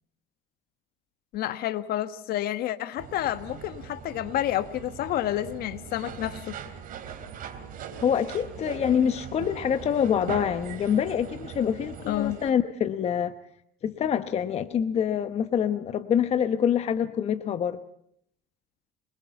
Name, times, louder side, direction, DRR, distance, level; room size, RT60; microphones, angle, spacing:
voice 1, 1.3-6.6 12.1-12.4, left 13 dB, 50° left, 12 dB, 1.3 m, -29 dB
sound 1, 3.0-12.5, right 7 dB, 45° right, 3.2 m, -41 dB
voice 2, 8.0-13.3 13.8-17.8, left 8 dB, 35° left, 9 dB, 1.0 m, -26 dB
25.0 x 22.0 x 5.8 m, 0.70 s
cardioid pair, 135°, 20 cm